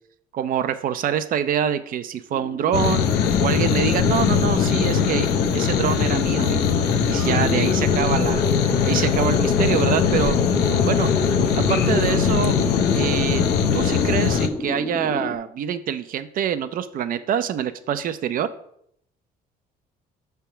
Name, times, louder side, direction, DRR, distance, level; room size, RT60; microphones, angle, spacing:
voice 1, 0.3-3.0 3.4-5.3 5.5-6.7 7.1-8.4 8.8-10.4 10.9-11.1 11.5-12.6 12.9-13.4 13.7-18.5, right 9 dB, 55° right, 12 dB, 0.5 m, -25 dB
sound 1, 2.3-15.4, left 2 dB, 10° left, 0.3 m, -30 dB
sound 2, 2.7-14.5, left 7 dB, 75° left, 0.7 m, -21 dB
6.0 x 3.5 x 5.7 m, 0.71 s
cardioid pair, 110°, 17 cm